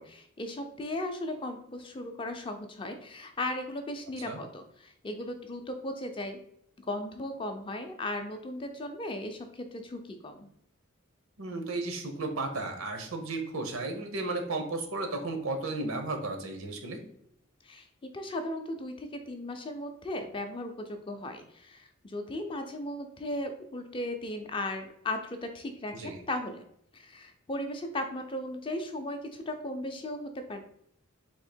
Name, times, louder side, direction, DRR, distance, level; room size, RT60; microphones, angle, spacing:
voice 1, 0.0-6.4 6.9-10.5 17.6-17.9 18.1-26.6 26.9-30.6, left 1 dB, 25° left, 6 dB, 0.4 m, -36 dB
voice 2, 11.4-17.0 26.0-26.2, right 2 dB, 85° right, 5 dB, 0.8 m, -34 dB
3.6 x 2.8 x 4.3 m, 0.71 s
head